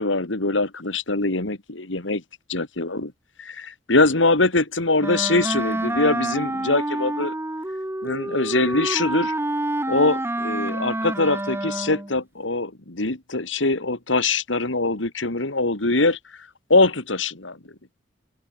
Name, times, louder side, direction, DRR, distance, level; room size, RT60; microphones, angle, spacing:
voice 1, 0.0-2.2 2.5-3.1 3.4-7.3 8.0-9.3 9.9-17.6, left 2 dB, 85° left, 2.6 m, -23 dB
Wind instrument woodwind instrument, 5.0-12.2, right 1 dB, 15° right, 1.2 m, -27 dB
open air
head